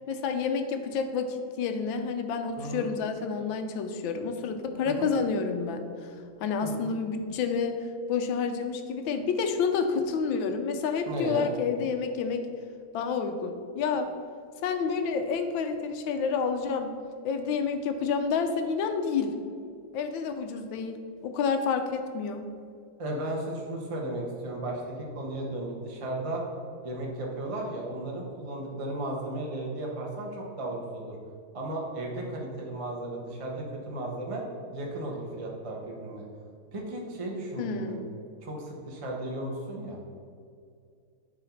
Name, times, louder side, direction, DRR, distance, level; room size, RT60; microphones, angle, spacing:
voice 1, 0.1-7.8 8.1-12.4 12.9-14.1 14.6-16.9 17.2-19.4 19.9-22.4 37.6-38.0, left 5 dB, 90° left, 7 dB, 1.5 m, -29 dB
voice 2, 2.6-2.9 5.0-5.1 6.6-6.9 11.1-11.5 23.0-24.8 25.1-26.4 26.8-31.2 31.5-34.4 34.7-36.2 36.7-38.0 38.4-40.0, right 1 dB, 25° right, -1 dB, 0.9 m, -35 dB
9.1 x 3.9 x 5.8 m, 2.3 s
omnidirectional pair, 2.0 m